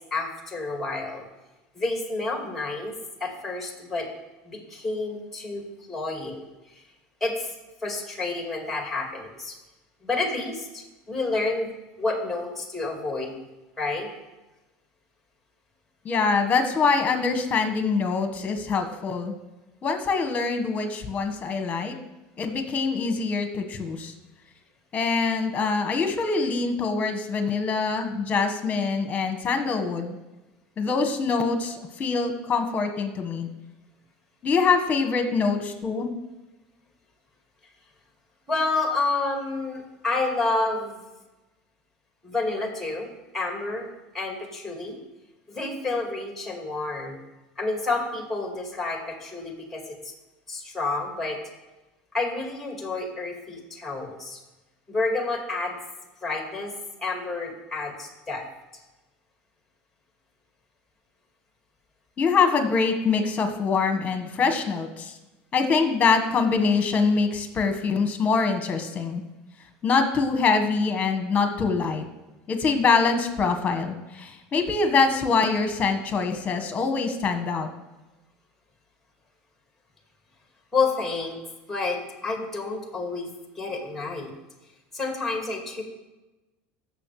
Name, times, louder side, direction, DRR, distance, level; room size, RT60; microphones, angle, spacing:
voice 1, 0.1-1.3 1.7-4.1 4.4-6.5 7.2-7.5 7.8-9.5 10.0-11.7 12.0-13.3 13.8-14.1 38.5-41.0 42.2-43.9 44.1-45.0 45.5-47.2 47.6-50.1 50.5-51.4 52.1-54.4 54.9-55.8 56.2-56.7 57.0-58.4 80.7-81.4 81.7-84.3 84.9-85.8, left 3 dB, 5° left, 2 dB, 2.1 m, -29 dB
voice 2, 16.0-19.4 19.8-22.0 22.4-24.1 24.9-30.1 30.8-33.5 34.4-36.1 62.2-65.1 65.5-69.2 69.8-72.0 72.5-77.7, left 4 dB, 25° left, 6 dB, 1.5 m, -24 dB
16.0 x 6.9 x 3.3 m, 1.1 s
supercardioid pair, 120°, 6 cm